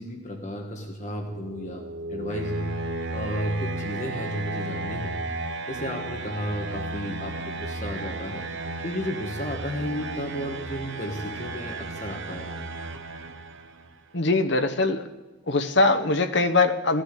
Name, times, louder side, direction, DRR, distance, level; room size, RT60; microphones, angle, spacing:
voice 1, 0.0-1.8 2.1-2.8 3.1-5.3 5.7-8.4 8.8-12.6, equal, 35° left, 2 dB, 1.5 m, -33 dB
sound 1, 1.1-13.9, right 2 dB, 60° right, 1.0 m, -34 dB
voice 2, 14.1-15.1 15.5-17.0, left 3 dB, 55° left, 9 dB, 1.0 m, -22 dB
16.5 x 11.5 x 6.7 m, 1.2 s
head